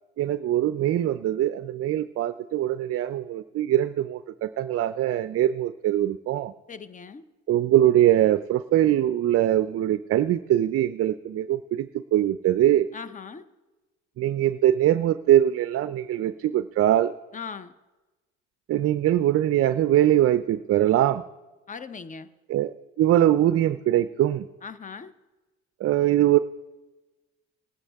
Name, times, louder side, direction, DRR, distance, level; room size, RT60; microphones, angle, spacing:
voice 1, 0.2-6.5 7.5-12.9 14.2-17.1 18.7-21.2 22.5-24.5 25.8-26.4, right 12 dB, 45° right, 13 dB, 0.5 m, -22 dB
voice 2, 6.7-7.2 12.9-13.4 17.3-17.7 21.7-22.3 24.6-25.1, left 5 dB, 25° left, 14 dB, 0.8 m, -39 dB
19.5 x 9.7 x 3.5 m, 1.1 s
supercardioid pair, 70°, 32 cm